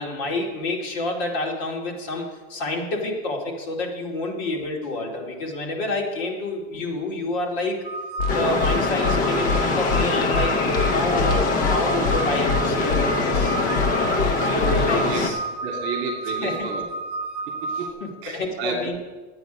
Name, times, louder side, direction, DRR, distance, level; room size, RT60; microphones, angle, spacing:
voice 1, 0.0-7.8 8.3-13.6 14.4-15.4 16.4-16.7 18.0-19.0, left 2 dB, 45° left, 0 dB, 2.4 m, -28 dB
sound 1, 7.8-17.9, right 3 dB, 5° right, 1.9 m, -31 dB
sound 2, 8.2-8.3 8.6-8.8 9.0-9.2 9.5-9.6 9.9-10.0 10.3-10.5 10.7-10.9 11.2-11.8 12.0-12.2 12.5-12.6 12.9-13.0 13.3-13.5 13.7-13.9 14.2-14.3 14.6-14.8, left 5 dB, 85° left, 1.6 m, -24 dB
sound 3, 8.3-15.3, left 3 dB, 20° left, 0.8 m, -23 dB
voice 2, 14.4-15.4 15.6-16.9 17.5-17.9 18.2-19.0, right 4 dB, 30° right, 1 dB, 2.4 m, -32 dB
12.5 x 9.2 x 5.1 m, 1.3 s
supercardioid pair, 170°, 37 cm